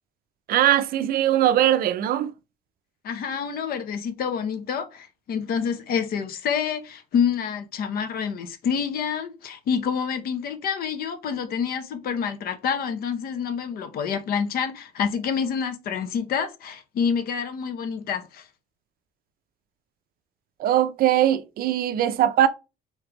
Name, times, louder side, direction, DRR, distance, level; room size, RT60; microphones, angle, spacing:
voice 1, 0.5-2.3 20.6-22.5, right 12 dB, 60° right, 0.5 m, -20 dB
voice 2, 3.0-18.5, left 7 dB, 65° left, 0.8 m, -27 dB
3.6 x 3.2 x 3.0 m
cardioid pair, 110°, 17 cm